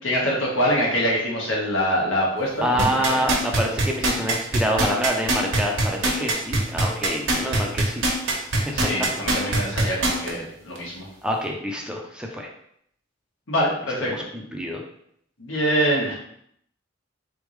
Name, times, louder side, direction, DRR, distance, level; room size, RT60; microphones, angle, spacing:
voice 1, 0.0-3.3 6.2-6.3 8.7-11.1 13.5-14.2 15.4-16.1, equal, 85° left, -3 dB, 1.4 m, -24 dB
voice 2, 2.6-8.0 8.7-8.8 9.7-9.8 11.2-12.5 14.1-14.8, equal, 5° right, 0 dB, 0.5 m, -26 dB
sound 1, 2.8-10.3 10.7-10.8, right 2 dB, 75° right, 1.1 m, -22 dB
4.0 x 3.5 x 3.2 m, 0.70 s
head